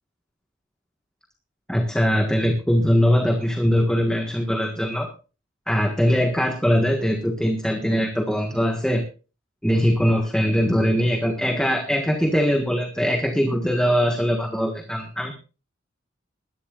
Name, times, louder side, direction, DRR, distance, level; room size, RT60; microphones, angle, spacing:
voice 1, 1.7-5.1 5.7-9.0 9.6-15.3, equal, 5° left, 2 dB, 1.6 m, -21 dB
21.5 x 11.5 x 2.5 m, 0.34 s
head